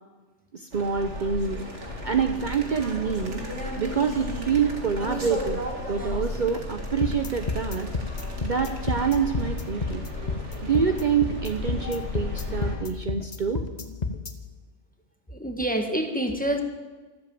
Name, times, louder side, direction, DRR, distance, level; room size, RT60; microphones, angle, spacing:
voice 1, 0.5-3.4 3.8-7.9 8.4-10.0 10.6-13.6, right 6 dB, 45° right, 6 dB, 0.9 m, -26 dB
sound 1, 0.7-12.8, right 1 dB, 90° right, 2.5 m, -38 dB
sound 2, 0.9-12.9, left 4 dB, 75° left, 1.5 m, -36 dB
sound 3, 7.0-14.3, left 4 dB, 40° left, 1.1 m, -30 dB
voice 2, 15.3-16.6, right 1 dB, 5° left, 4 dB, 1.5 m, -27 dB
13.0 x 12.5 x 7.7 m, 1.3 s
omnidirectional pair, 1.2 m